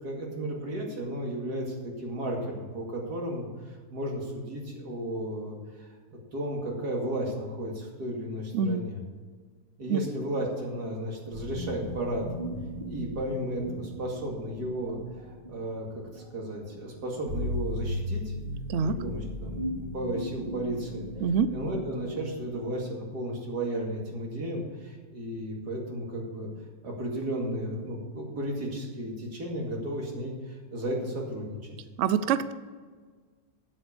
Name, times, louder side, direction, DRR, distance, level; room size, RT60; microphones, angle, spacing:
voice 1, 0.0-5.9 6.3-9.0 9.8-12.3 12.8-15.0 15.5-15.9 16.1-18.3 18.8-21.1 21.5-26.5 26.8-31.6, right 1 dB, 65° right, -1 dB, 2.8 m, -34 dB
sound 1, 11.3-22.9, left 1 dB, 30° right, 3.0 m, -37 dB
voice 2, 21.2-21.5 32.0-32.5, right 6 dB, 80° right, 13 dB, 0.6 m, -25 dB
8.8 x 8.0 x 7.0 m, 1.5 s
omnidirectional pair, 1.9 m